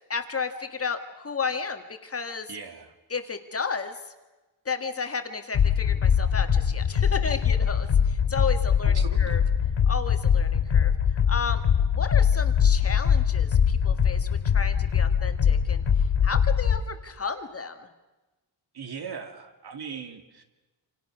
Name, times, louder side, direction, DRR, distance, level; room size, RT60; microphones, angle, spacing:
voice 1, 0.1-2.5 3.1-4.0 4.7-9.4 9.8-10.9 11.3-15.8 16.2-17.9, left 5 dB, 30° left, 7 dB, 1.9 m, -33 dB
voice 2, 2.5-2.9 8.9-9.5 18.7-20.4, right 6 dB, 60° right, 7 dB, 2.5 m, -39 dB
sound 1, 5.5-16.8, left 7 dB, 75° left, 3.3 m, -22 dB
28.0 x 27.5 x 6.3 m, 1.1 s
wide cardioid pair, 175°, 44 cm